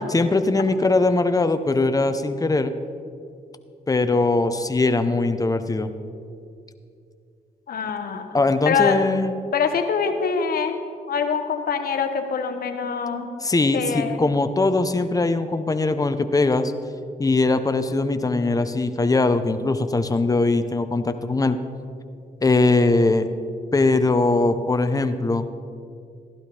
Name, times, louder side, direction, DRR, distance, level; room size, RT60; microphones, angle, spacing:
voice 1, 0.1-2.7 3.9-5.9 8.3-9.3 13.4-16.7 17.2-21.6 22.4-23.3 23.7-25.4, left 3 dB, 20° left, 9 dB, 0.8 m, -21 dB
voice 2, 7.7-8.3 8.7-9.0 9.5-10.8 11.1-13.3 13.7-14.3, left 6 dB, 70° left, 6 dB, 1.1 m, -24 dB
15.5 x 11.5 x 3.4 m, 2.4 s
cardioid pair, 60°, 16 cm